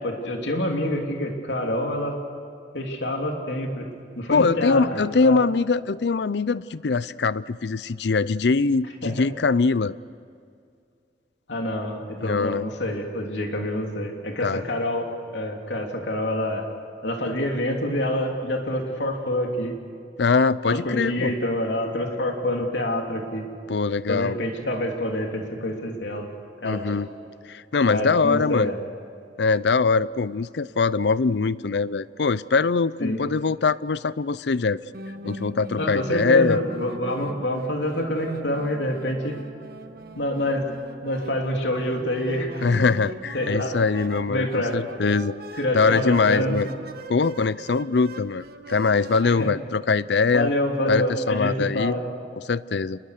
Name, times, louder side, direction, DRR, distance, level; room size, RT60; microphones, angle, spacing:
voice 1, 0.0-2.2 2.7-3.9 4.2-5.3 9.0-9.2 11.5-16.7 17.0-19.8 20.7-23.5 24.1-26.2 26.6-26.8 27.8-28.8 33.0-33.2 35.8-39.4 40.2-40.6 41.0-42.7 43.3-43.7 44.3-44.8 45.6-46.5 49.2-49.5 50.3-52.0, left 1 dB, 90° left, 2 dB, 3.1 m, -27 dB
voice 2, 4.3-10.0 12.2-12.7 14.4-14.6 20.2-21.3 23.7-24.4 26.6-27.1 27.5-28.7 29.4-34.8 35.2-36.6 42.6-45.3 45.7-46.7 47.1-50.5 50.9-52.0 52.4-53.0, left 4 dB, 75° left, 19 dB, 0.5 m, -22 dB
sound 1, 34.9-49.5, right 1 dB, 60° right, 1.2 m, -40 dB
27.5 x 21.5 x 6.6 m, 2.3 s
head